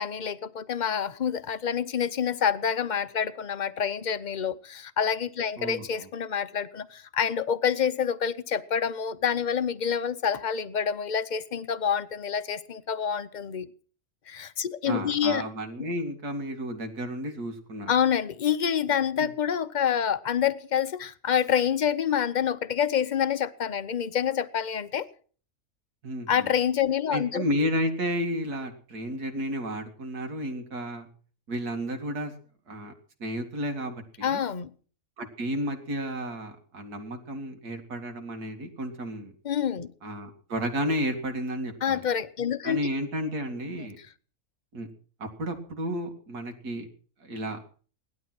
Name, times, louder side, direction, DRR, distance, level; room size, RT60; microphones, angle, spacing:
voice 1, 0.0-13.7 14.3-15.5 17.9-25.1 26.3-27.5 34.2-34.7 39.4-39.9 41.8-42.8 43.7-43.8, left 8 dB, 40° left, 0.7 m, -27 dB
voice 2, 5.6-6.1 14.8-17.9 19.2-19.3 26.0-26.5 27.1-31.1 31.5-32.3 32.7-32.9 33.2-34.4 35.2-39.3 40.0-42.0 42.6-44.0 44.7-44.9 45.2-46.9 47.2-47.6, equal, 80° right, 2.7 m, -32 dB
18.5 x 12.0 x 6.1 m
omnidirectional pair, 1.6 m